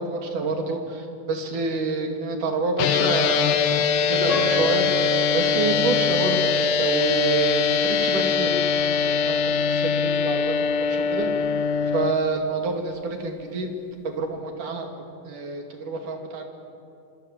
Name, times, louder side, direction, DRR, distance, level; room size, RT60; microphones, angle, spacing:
voice 1, 0.0-4.9 5.3-10.5 10.9-11.3 11.9-13.7 14.0-16.4, right 3 dB, 80° right, 3 dB, 4.1 m, -28 dB
sound 1, 2.8-12.1, left 6 dB, 80° left, 2.6 m, -22 dB
Piano, 4.3-7.3 7.9-8.0 8.6-8.8, right 3 dB, 20° right, 6.9 m, -32 dB
27.0 x 25.0 x 7.4 m, 2.6 s
omnidirectional pair, 3.6 m